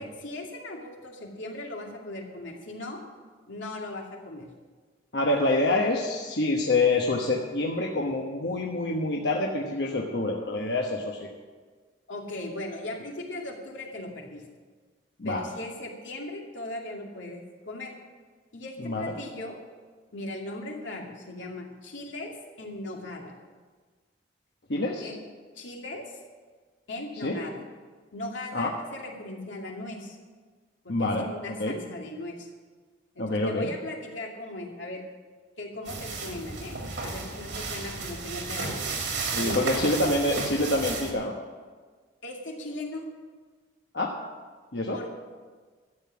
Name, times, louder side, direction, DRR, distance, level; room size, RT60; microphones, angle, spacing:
voice 1, 0.0-3.0 3.5-4.5 12.1-14.4 15.2-17.9 18.5-19.6 20.1-22.3 22.6-23.3 24.8-25.2 25.5-26.2 26.9-27.6 28.1-30.2 30.8-32.5 33.1-35.0 35.6-38.8 39.4-39.7 42.2-43.0 44.9-45.1, left 2 dB, 85° left, 0 dB, 2.5 m, -38 dB
voice 2, 5.1-11.3 15.2-15.4 18.8-19.1 24.7-25.1 27.2-27.4 28.5-28.7 30.9-31.3 31.6-31.8 33.2-33.7 39.3-41.3 43.9-44.1 44.7-45.0, left 2 dB, 60° left, -1 dB, 1.2 m, -26 dB
sound 1, 35.9-41.1, right 4 dB, 75° right, 2.6 m, -33 dB
13.0 x 7.8 x 8.5 m, 1.5 s
head